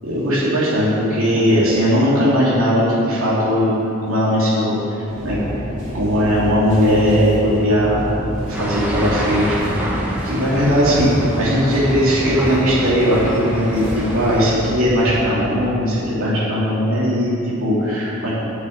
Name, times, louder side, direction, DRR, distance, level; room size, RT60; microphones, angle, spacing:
voice 1, 0.1-3.7 4.0-5.4 5.9-8.0 8.5-9.6 10.2-13.8 14.1-18.3, equal, 70° right, -8 dB, 3.1 m, -18 dB
Target superstore on a Wednesday evening, 5.1-15.3, equal, 55° right, 3.0 m, -29 dB
sound 1, 8.5-14.4, equal, 5° right, 1.8 m, -27 dB
9.4 x 7.3 x 8.8 m, 2.8 s
head